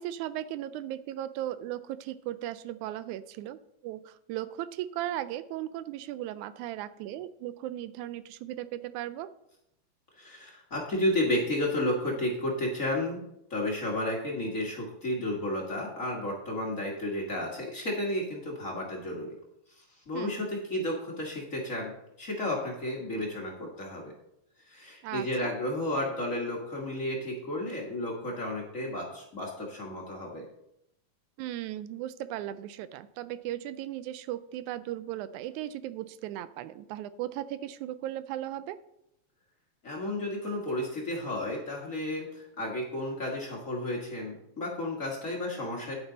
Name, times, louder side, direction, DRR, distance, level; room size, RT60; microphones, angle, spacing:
voice 1, 0.0-3.6 3.8-9.3 20.1-20.3 25.0-25.6 31.4-38.8, right 13 dB, 85° right, 14 dB, 2.0 m, -37 dB
voice 2, 10.2-13.2 13.5-19.3 19.7-21.9 22.2-24.1 24.7-30.4 39.8-45.9, left 1 dB, 30° left, -2 dB, 1.8 m, -32 dB
10.0 x 8.8 x 4.0 m, 0.82 s
omnidirectional pair, 3.4 m